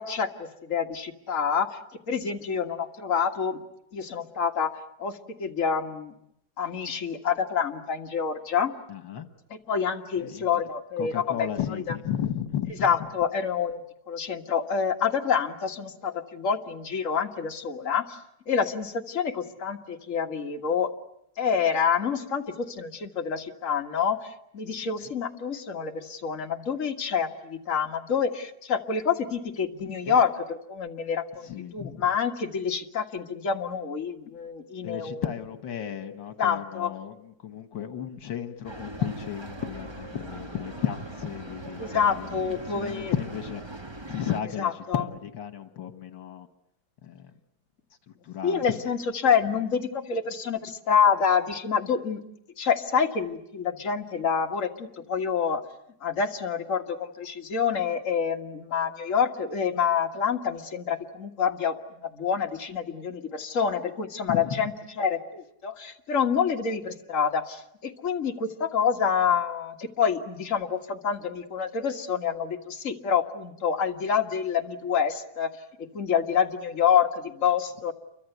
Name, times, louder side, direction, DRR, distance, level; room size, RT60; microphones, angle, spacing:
voice 1, 0.0-1.8 2.1-3.6 3.9-4.7 5.0-6.1 6.6-8.7 9.5-11.5 11.9-12.0 12.8-13.8 14.1-18.2 18.5-20.9 21.4-35.2 36.4-36.9 41.8-43.1 44.6-45.0 48.4-52.2 52.6-55.6 56.0-75.5 75.8-77.9, left 7 dB, 45° left, 2 dB, 2.1 m, -27 dB
voice 2, 8.9-9.3 10.1-10.7 11.0-13.1 25.0-25.1 30.1-30.2 31.3-32.2 34.8-43.6 44.1-46.5 47.0-47.3 48.1-48.9 49.4-49.6 64.3-64.7, left 9 dB, 80° left, 8 dB, 2.1 m, -34 dB
sound 1, 38.6-44.4, right 2 dB, 15° right, 1.2 m, -40 dB
29.5 x 24.0 x 8.1 m, 0.78 s
omnidirectional pair, 2.1 m